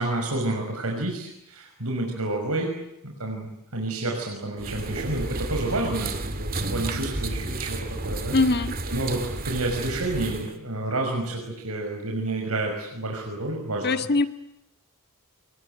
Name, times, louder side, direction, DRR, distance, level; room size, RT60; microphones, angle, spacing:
voice 1, 0.0-2.7 3.0-8.4 8.9-14.0, right 2 dB, 80° right, 1 dB, 6.1 m, -29 dB
sound 1, 4.6-10.6, right 2 dB, 40° right, 2.4 m, -32 dB
voice 2, 8.3-8.7 13.8-14.3, left 3 dB, 50° left, 9 dB, 1.7 m, -21 dB
27.0 x 22.5 x 9.1 m, 0.85 s
head